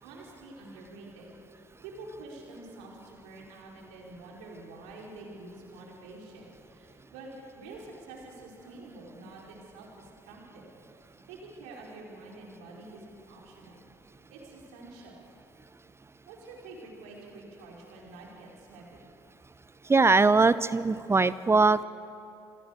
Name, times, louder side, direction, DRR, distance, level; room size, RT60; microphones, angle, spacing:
voice 1, 0.0-1.3 1.8-13.8 14.3-15.3 16.3-19.1, right 2 dB, 70° right, -2 dB, 5.1 m, -47 dB
voice 2, 19.9-21.8, right 3 dB, 20° right, 17 dB, 0.6 m, -21 dB
27.5 x 19.0 x 6.8 m, 2.8 s
figure-of-eight pair, 50°, 12 cm